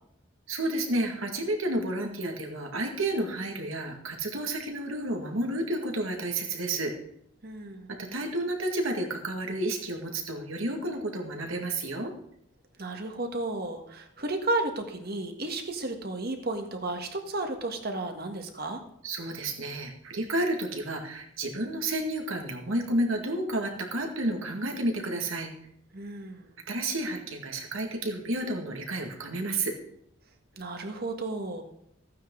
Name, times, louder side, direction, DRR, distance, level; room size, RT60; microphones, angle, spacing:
voice 1, 0.5-6.9 7.9-12.1 19.0-25.5 26.7-29.7, right 1 dB, 75° right, 2 dB, 2.0 m, -31 dB
voice 2, 7.4-7.9 12.8-18.8 25.9-26.5 30.6-31.6, right 2 dB, 50° right, 5 dB, 1.6 m, -33 dB
15.5 x 9.3 x 3.8 m, 0.73 s
head